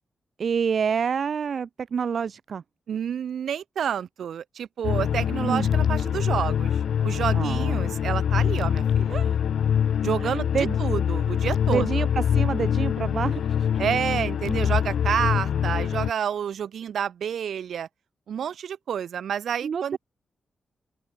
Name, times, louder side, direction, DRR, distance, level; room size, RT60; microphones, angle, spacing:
voice 1, 0.4-2.6 5.4-5.7 7.3-8.0 9.1-9.4 10.2-10.8 11.7-13.7 19.6-20.0, right 6 dB, 60° right, 1.9 m, -28 dB
voice 2, 2.9-9.2 10.0-12.1 13.8-17.9 18.3-20.0, right 8 dB, 80° right, 3.4 m, -29 dB
sound 1, 4.8-16.1, left 8 dB, 80° left, 0.9 m, -24 dB
open air
cardioid pair, 105°, 0 cm